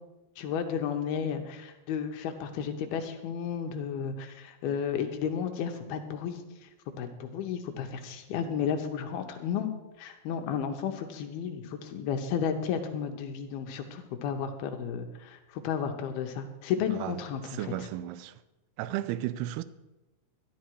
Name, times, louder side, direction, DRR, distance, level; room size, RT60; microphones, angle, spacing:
voice 1, 0.4-6.4 7.0-9.7 10.0-17.4 17.8-17.9, left 7 dB, 75° left, 2.5 m, -33 dB
voice 2, 16.9-18.4 18.8-19.6, right 13 dB, 85° right, 2.3 m, -34 dB
12.5 x 12.0 x 4.7 m
omnidirectional pair, 5.1 m